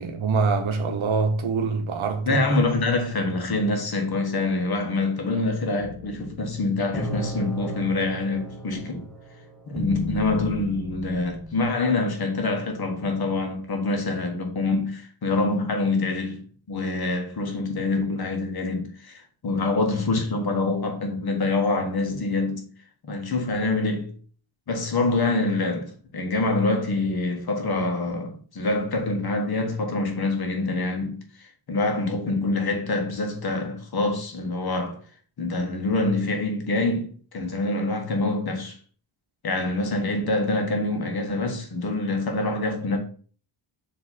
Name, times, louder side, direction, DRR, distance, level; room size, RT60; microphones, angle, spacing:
voice 1, 0.0-2.6, right 4 dB, 70° right, 1.2 m, -25 dB
voice 2, 2.3-9.0 9.7-22.6 23.0-24.1 24.7-35.0 35.4-38.8 39.4-43.0, left 2 dB, 50° left, 1.4 m, -25 dB
sound 1, 5.8-11.6, equal, ahead, 0.8 m, -35 dB
7.2 x 3.2 x 4.2 m
wide cardioid pair, 175°, 50 cm